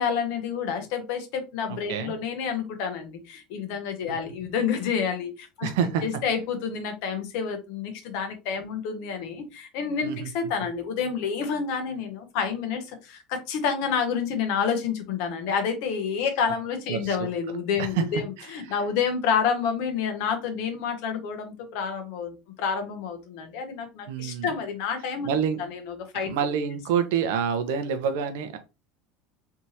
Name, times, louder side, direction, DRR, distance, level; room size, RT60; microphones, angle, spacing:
voice 1, 0.0-5.7 6.0-18.2 18.5-25.3 25.7-26.5, left 6 dB, 70° left, 6 dB, 1.0 m, -29 dB
voice 2, 1.7-2.1 4.1-4.2 5.6-6.0 10.0-10.5 16.9-17.3 17.8-18.0 18.7-18.8 24.1-24.5 25.2-25.6 26.2-28.6, right 7 dB, 80° right, 9 dB, 0.7 m, -27 dB
3.5 x 2.9 x 2.8 m, 0.27 s
supercardioid pair, 105°, 0 cm